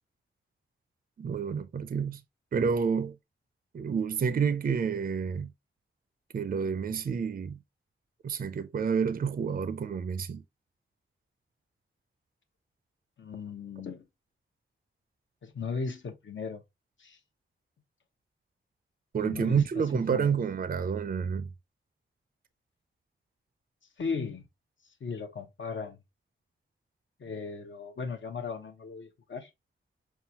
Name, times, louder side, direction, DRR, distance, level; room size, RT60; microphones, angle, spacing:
voice 1, 1.2-2.2 2.5-3.2 3.7-5.5 6.3-7.6 8.2-10.4 19.1-21.5, right 6 dB, 45° right, 0.4 m, -29 dB
voice 2, 13.2-14.1 15.4-16.6 17.0-17.2 19.2-20.3 24.0-24.4 25.0-26.0 27.2-29.5, left 5 dB, 65° left, 0.8 m, -37 dB
5.6 x 2.4 x 2.7 m
wide cardioid pair, 95°, 21 cm